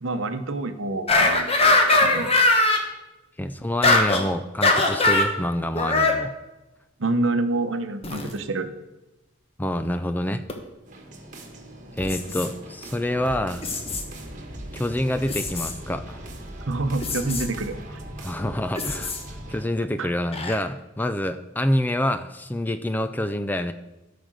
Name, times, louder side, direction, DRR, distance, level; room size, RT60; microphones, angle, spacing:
voice 1, 0.0-1.5 2.0-2.3 7.0-8.7 16.7-18.0 20.0-20.1, right 2 dB, 70° right, 8 dB, 0.9 m, -27 dB
sound 1, 1.1-2.8 3.8-4.2 4.6-5.3 5.7-6.2 8.0-8.3 10.5-10.6 12.0-12.5 13.6-14.0 15.3-15.7 17.0-17.4 18.7-19.2 20.3-20.5, left 2 dB, 30° left, 1.1 m, -21 dB
voice 2, 3.4-6.3 9.6-10.4 12.0-13.7 14.7-16.2 18.2-19.1 19.5-23.7, left 1 dB, 10° left, 10 dB, 0.4 m, -27 dB
sound 2, 10.9-19.6, right 1 dB, 40° right, 1.4 m, -39 dB
13.0 x 5.1 x 6.3 m, 1.0 s
head